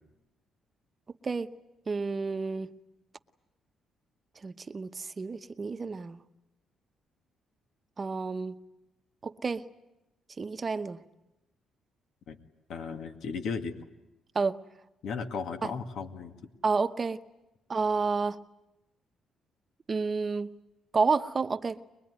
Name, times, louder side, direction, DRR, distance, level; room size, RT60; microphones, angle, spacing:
voice 1, 1.9-2.7 4.4-6.2 8.0-8.6 9.2-9.7 10.4-11.0 14.3-14.6 15.6-15.7 16.6-17.2 17.7-18.4 19.9-20.5 20.9-21.8, right 4 dB, 35° right, 0.9 m, -30 dB
voice 2, 12.7-13.8 15.0-16.3, left 5 dB, 70° left, 2.2 m, -35 dB
23.5 x 21.5 x 9.7 m
cardioid pair, 90°, 0 cm